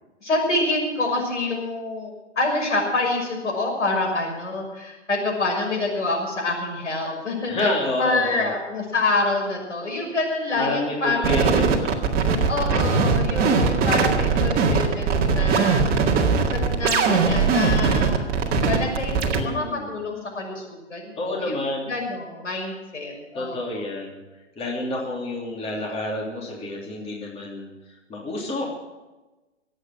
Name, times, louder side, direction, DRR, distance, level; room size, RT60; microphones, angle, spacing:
voice 1, 0.2-7.7 8.0-11.7 12.5-18.3 18.7-23.8, left 2 dB, 85° left, 0 dB, 6.3 m, -27 dB
voice 2, 7.5-8.5 10.5-12.4 19.3-19.9 21.2-21.9 23.3-24.2 24.5-27.7 28.1-28.7, left 1 dB, 15° left, -2 dB, 3.2 m, -29 dB
sound 1, 11.2-19.4, right 5 dB, 25° right, 1.9 m, -20 dB
24.0 x 8.9 x 6.1 m, 1.1 s
figure-of-eight pair, 120°, 36 cm